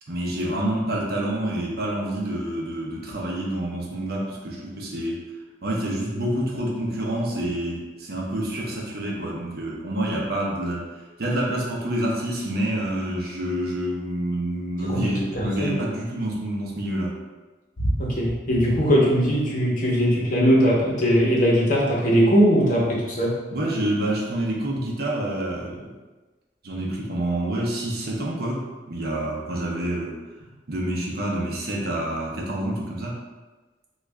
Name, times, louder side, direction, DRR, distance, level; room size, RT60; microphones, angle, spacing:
voice 1, 0.1-5.2 5.6-10.8 11.2-17.1 23.5-25.9 26.6-30.2 30.7-33.2, right 1 dB, 55° right, -3 dB, 0.6 m, -27 dB
voice 2, 14.8-15.7 17.8-23.4, equal, 45° left, -5 dB, 0.8 m, -20 dB
3.1 x 2.3 x 3.5 m, 1.2 s
head